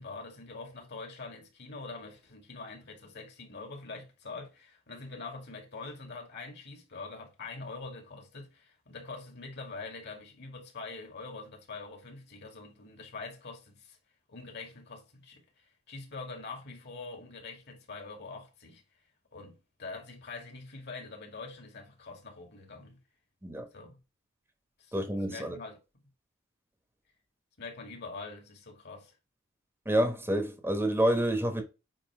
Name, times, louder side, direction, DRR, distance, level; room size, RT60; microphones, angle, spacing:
voice 1, 0.0-14.0 14.3-18.8 19.3-23.0 23.7-24.0 24.8-24.9 25.3-25.8 27.6-29.1, left 3 dB, 55° left, 2.1 m, -44 dB
voice 2, 24.9-25.6 29.8-31.6, right 1 dB, 10° right, 1.1 m, -28 dB
8.8 x 2.9 x 4.7 m
head